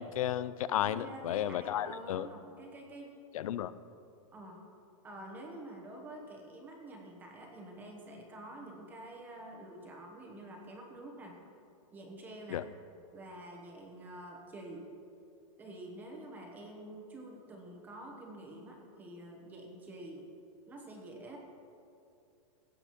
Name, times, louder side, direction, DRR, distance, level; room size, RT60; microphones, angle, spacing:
voice 1, 0.0-2.3 3.3-3.7 12.5-12.6, left 11 dB, 85° left, 16 dB, 0.4 m, -33 dB
voice 2, 0.8-3.1 4.3-4.6 5.0-11.4 11.9-12.6 13.1-14.9 15.6-20.3 20.7-21.4, right 1 dB, 10° right, 0 dB, 0.9 m, -48 dB
17.0 x 7.8 x 3.0 m, 2.6 s
supercardioid pair, 175°, 17 cm